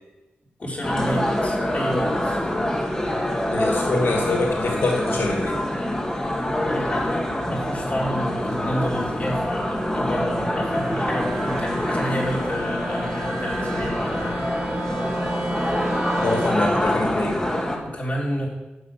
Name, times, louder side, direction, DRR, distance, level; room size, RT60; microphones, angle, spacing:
voice 1, 0.6-2.4 6.7-14.3 17.8-18.5, equal, 40° left, -4 dB, 3.9 m, -29 dB
sound 1, 0.8-17.8, left 1 dB, 15° left, 1.9 m, -25 dB
voice 2, 3.5-5.6 16.1-17.4, left 2 dB, 90° left, 1 dB, 2.0 m, -24 dB
Wind instrument woodwind instrument, 5.1-16.7, right 2 dB, 55° right, 1.7 m, -34 dB
12.0 x 7.5 x 7.4 m, 1.1 s
wide cardioid pair, 140°, 4 cm